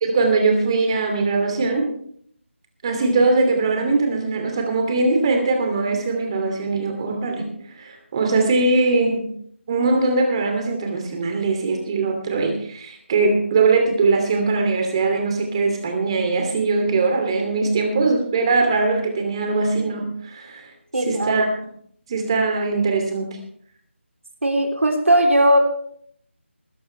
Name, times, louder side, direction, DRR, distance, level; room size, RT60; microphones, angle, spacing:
voice 1, 0.0-1.9 2.8-9.3 9.7-20.7 21.1-21.5 22.1-23.3, right 3 dB, 25° right, 3 dB, 2.7 m, -21 dB
voice 2, 20.9-21.4 24.4-25.6, right 1 dB, 80° right, 2 dB, 3.4 m, -18 dB
20.5 x 11.0 x 3.3 m, 0.62 s
figure-of-eight pair, 170°, 7 cm